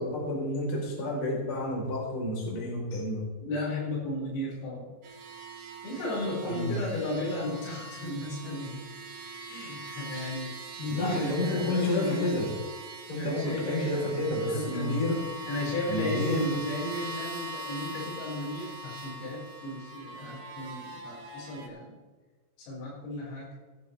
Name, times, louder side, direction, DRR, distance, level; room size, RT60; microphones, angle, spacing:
voice 1, 0.0-3.2 6.4-6.8 10.9-12.5 13.1-15.2 15.9-16.6, left 1 dB, 30° left, -3 dB, 4.1 m, -30 dB
voice 2, 3.4-4.9 5.8-8.8 9.5-10.5 10.8-12.4 13.2-14.1 14.5-15.0 15.5-22.0 22.6-23.5, left 1 dB, 90° left, -5 dB, 7.4 m, -34 dB
sound 1, 5.0-21.7, right 2 dB, 75° right, 4.3 m, -42 dB
16.0 x 12.0 x 3.3 m, 1.4 s
omnidirectional pair, 5.8 m